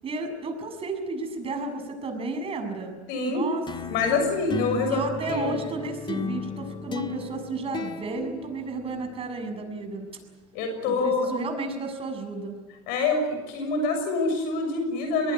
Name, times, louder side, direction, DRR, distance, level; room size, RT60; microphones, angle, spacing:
voice 1, 0.0-3.0 3.3-3.7 4.1-4.3 4.9-10.1 10.9-12.6, right 3 dB, 35° right, 6 dB, 7.0 m, -32 dB
voice 2, 3.1-3.4 3.9-5.5 10.5-11.3 12.9-15.3, left 3 dB, 70° left, 5 dB, 6.5 m, -26 dB
sound 1, 3.7-9.3, left 4 dB, 30° left, 2.0 m, -35 dB
23.0 x 20.0 x 9.6 m, 1.3 s
supercardioid pair, 90°, 16 cm